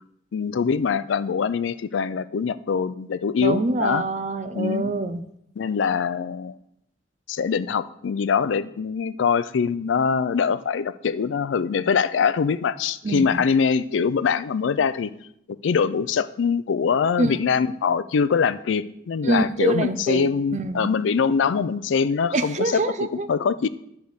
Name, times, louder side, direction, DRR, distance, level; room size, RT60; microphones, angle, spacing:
voice 1, 0.3-4.0 4.5-4.9 5.6-6.6 7.3-15.1 15.5-22.8 23.3-23.7, left 6 dB, 90° left, 16 dB, 0.4 m, -23 dB
voice 2, 3.4-5.2 13.0-13.4 17.2-17.4 19.2-20.9 22.3-23.3, right 2 dB, 40° right, 10 dB, 0.5 m, -25 dB
10.5 x 3.5 x 6.5 m, 0.75 s
head